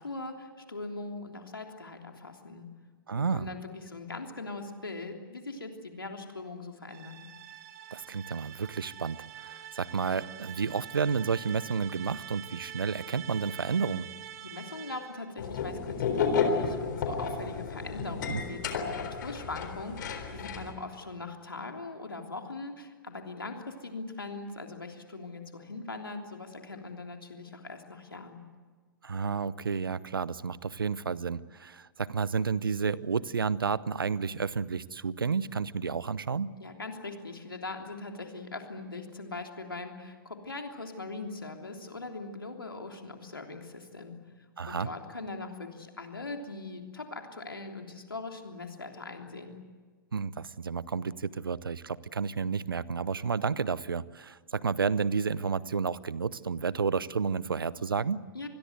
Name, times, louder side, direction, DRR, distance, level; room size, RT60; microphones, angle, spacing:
voice 1, 0.0-2.7 3.1-7.2 14.4-28.4 36.6-44.2 44.7-49.6 58.3-58.5, left 3 dB, 90° left, 3 dB, 3.3 m, -41 dB
voice 2, 3.1-3.5 7.9-14.1 18.3-18.4 29.0-36.5 44.6-44.9 50.1-58.2, right 5 dB, 80° right, 20 dB, 0.8 m, -31 dB
sound 1, 6.9-15.3, right 11 dB, 55° right, 2.4 m, -45 dB
sound 2, 15.4-20.7, left 5 dB, 60° left, 3.8 m, -32 dB
26.5 x 21.0 x 8.1 m, 1.5 s
figure-of-eight pair, 110°, 12 cm